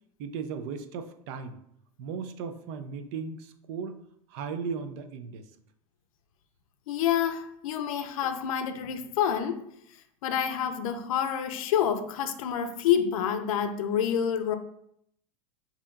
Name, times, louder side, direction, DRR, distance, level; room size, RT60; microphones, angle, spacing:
voice 1, 0.2-1.6 2.0-4.0 4.3-5.5, right 5 dB, 50° right, 0.5 m, -36 dB
voice 2, 6.9-9.6 10.2-14.6, left 9 dB, 70° left, 0.6 m, -28 dB
6.6 x 2.8 x 2.5 m
supercardioid pair, 130°, 18 cm